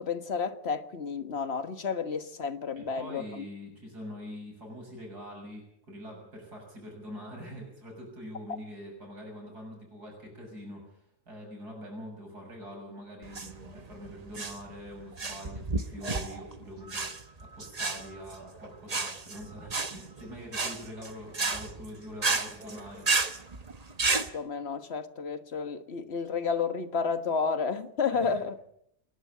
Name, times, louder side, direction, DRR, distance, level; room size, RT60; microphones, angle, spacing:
voice 1, 0.0-3.2 24.3-28.6, left 5 dB, 45° left, 1.7 m, -31 dB
voice 2, 2.7-17.2 17.5-23.1 28.1-28.4, equal, 75° right, 7.2 m, -44 dB
sound 1, 13.2-24.3, right 3 dB, 25° right, 1.1 m, -32 dB
28.5 x 11.5 x 8.7 m
omnidirectional pair, 1.7 m